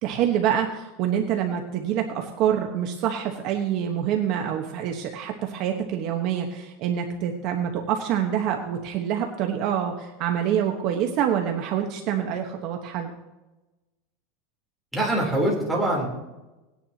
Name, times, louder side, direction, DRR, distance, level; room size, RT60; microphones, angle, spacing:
voice 1, 0.0-13.1, right 9 dB, 45° right, 3 dB, 1.2 m, -26 dB
voice 2, 14.9-16.1, right 1 dB, 5° right, -4 dB, 3.6 m, -23 dB
19.0 x 10.0 x 2.9 m, 1.1 s
supercardioid pair, 155°, 0 cm